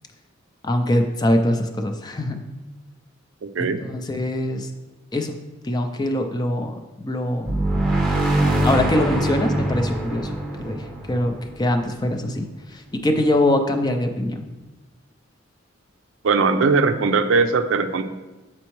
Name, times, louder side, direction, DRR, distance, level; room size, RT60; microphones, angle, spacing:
voice 1, 0.6-2.4 3.6-4.7 5.1-5.4 5.6-7.6 8.6-10.3 10.6-14.5, left 1 dB, 20° left, 5 dB, 0.4 m, -23 dB
voice 2, 3.4-3.8 16.2-18.0, right 4 dB, 65° right, 9 dB, 0.4 m, -19 dB
sound 1, 7.4-12.1, right 1 dB, ahead, 0.8 m, -23 dB
8.2 x 4.3 x 3.1 m, 1.1 s
head